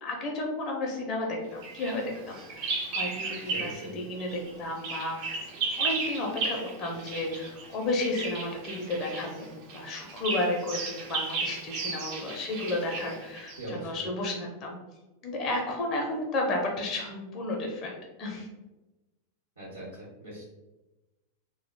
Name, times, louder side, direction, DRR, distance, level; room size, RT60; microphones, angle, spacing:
voice 1, 0.0-5.2 5.8-14.8 15.2-18.5, left 2 dB, 35° left, 1 dB, 0.5 m, -32 dB
Bird vocalization bird call bird song, 1.6-3.9 4.2-13.7, right 4 dB, 45° right, 0.5 m, -35 dB
voice 2, 3.4-3.9 13.6-14.0 19.6-19.8 20.2-20.4, right 1 dB, 75° right, -9 dB, 0.9 m, -40 dB
2.5 x 2.1 x 2.8 m, 1.1 s
figure-of-eight pair, 90°, 0 cm